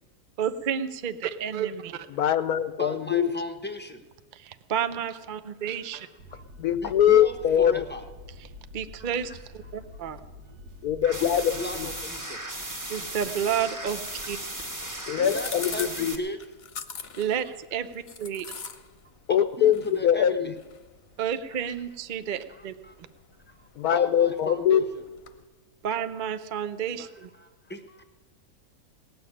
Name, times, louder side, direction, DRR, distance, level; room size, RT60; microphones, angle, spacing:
voice 1, 0.4-2.1 4.3-6.1 8.7-10.2 12.9-14.0 14.3-14.4 17.2-18.5 21.2-22.7 25.8-27.3, right 8 dB, 50° right, 11 dB, 0.6 m, -30 dB
voice 2, 2.1-3.3 6.3-7.8 10.8-11.9 15.1-16.2 19.3-20.5 23.7-24.9, left 9 dB, 75° left, 12 dB, 1.1 m, -23 dB
voice 3, 2.8-4.0 5.0-5.1 5.6-5.9 6.3-6.4 6.8-8.0 9.0-9.1 11.2-13.0 15.1-16.4 19.6-20.5 22.5-22.9 23.5-24.8 27.4-28.0, left 1 dB, 10° left, 7 dB, 0.8 m, -37 dB
sound 1, 6.2-12.0, left 1 dB, 80° right, 1.5 m, -47 dB
sound 2, 11.0-16.2, right 1 dB, 10° right, 1.4 m, -36 dB
sound 3, 13.8-25.4, left 6 dB, 45° left, 1.0 m, -45 dB
19.0 x 7.1 x 9.9 m, 1.4 s
omnidirectional pair, 1.7 m